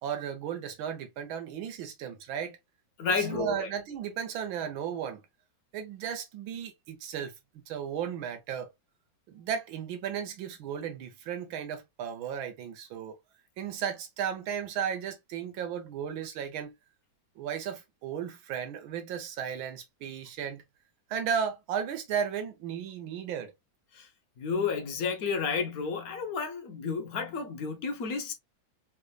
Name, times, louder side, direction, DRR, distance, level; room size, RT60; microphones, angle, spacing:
voice 1, 0.0-2.6 3.2-5.2 5.7-8.7 9.3-13.2 13.6-16.7 17.4-20.6 21.1-23.5, right 8 dB, 85° right, 1.6 m, -35 dB
voice 2, 3.0-3.7 23.9-24.1 24.4-28.3, left 5 dB, 60° left, 1.1 m, -31 dB
3.5 x 3.4 x 2.3 m
omnidirectional pair, 2.1 m